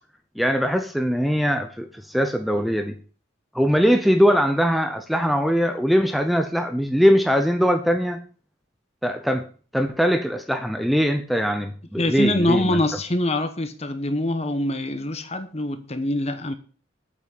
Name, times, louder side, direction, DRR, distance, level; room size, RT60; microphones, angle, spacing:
voice 1, 0.4-2.9 3.5-8.2 9.0-9.5 9.7-12.8, equal, ahead, 0.7 m, -21 dB
voice 2, 12.0-16.6, left 1 dB, 30° left, 1.1 m, -24 dB
8.7 x 6.0 x 8.3 m
head